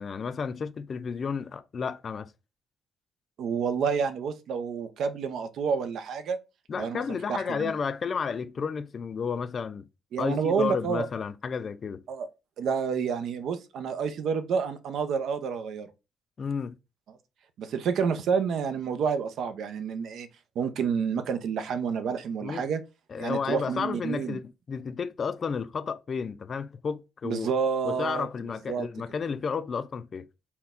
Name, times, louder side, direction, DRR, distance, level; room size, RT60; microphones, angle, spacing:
voice 1, 0.0-2.3 6.7-9.9 10.2-12.0 16.4-16.7 22.4-22.6 23.1-27.5 27.8-30.3, left 6 dB, 45° left, 0.4 m, -32 dB
voice 2, 3.4-6.4 6.8-7.0 7.3-7.7 10.1-11.1 12.1-12.3 12.6-15.9 17.6-20.3 20.6-22.8 23.2-24.4 27.2-28.3 28.7-28.9, right 6 dB, 75° right, 0.5 m, -29 dB
4.2 x 2.3 x 3.5 m
cardioid pair, 90°, 0 cm